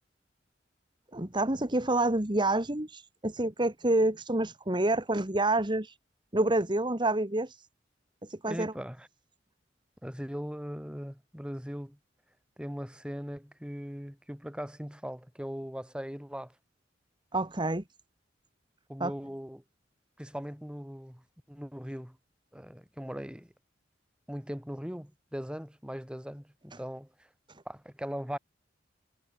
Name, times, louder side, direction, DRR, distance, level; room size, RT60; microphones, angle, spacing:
voice 1, 1.1-6.0 6.3-7.7 8.3-8.7 17.3-17.8 19.0-19.1, right 2 dB, 25° right, 1.9 m, -28 dB
voice 2, 8.5-9.1 10.0-12.0 12.6-16.5 18.9-19.6 20.2-21.2 21.5-22.2 22.5-23.5 24.3-27.1 27.6-28.4, equal, 5° right, 4.4 m, -39 dB
head